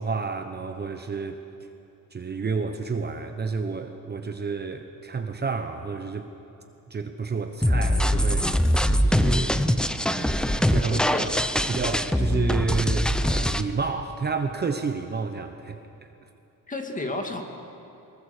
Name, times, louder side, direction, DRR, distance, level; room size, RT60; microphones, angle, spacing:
voice 1, 0.0-1.4 2.1-6.3 6.9-8.5 9.0-9.9 10.2-11.3 11.7-15.8, right 4 dB, 30° right, 6 dB, 1.0 m, -30 dB
sound 1, 7.6-13.6, equal, ahead, 0.6 m, -23 dB
voice 2, 10.6-11.4 16.7-17.4, left 2 dB, 20° left, 3 dB, 2.1 m, -32 dB
23.5 x 22.0 x 6.8 m, 2.9 s
cardioid pair, 140°, 35 cm